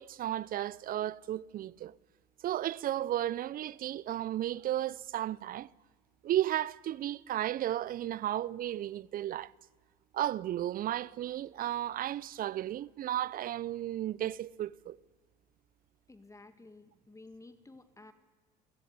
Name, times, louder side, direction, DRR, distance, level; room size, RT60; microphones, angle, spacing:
voice 1, 0.0-1.9 2.4-5.7 6.2-9.5 10.1-15.0, right 12 dB, 45° right, 0.7 m, -34 dB
voice 2, 16.1-18.1, left 2 dB, 15° left, 2.2 m, -53 dB
29.0 x 17.0 x 8.3 m
hypercardioid pair, 65°, 20 cm